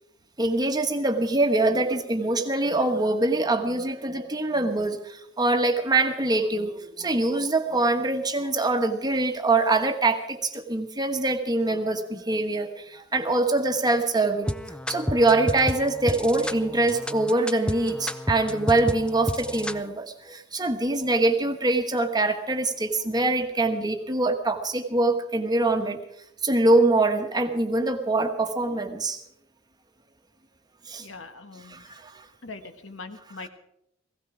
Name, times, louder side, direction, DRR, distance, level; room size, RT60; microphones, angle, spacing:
voice 1, 0.4-14.5 14.9-26.0 26.4-29.2 30.9-31.1 31.7-32.2, right 2 dB, 20° right, 6 dB, 1.3 m, -24 dB
sound 1, 14.5-19.8, left 1 dB, 5° left, 0.6 m, -31 dB
voice 2, 31.0-31.8 32.4-33.5, left 3 dB, 75° left, 8 dB, 1.4 m, -41 dB
16.5 x 16.5 x 5.0 m, 0.76 s
head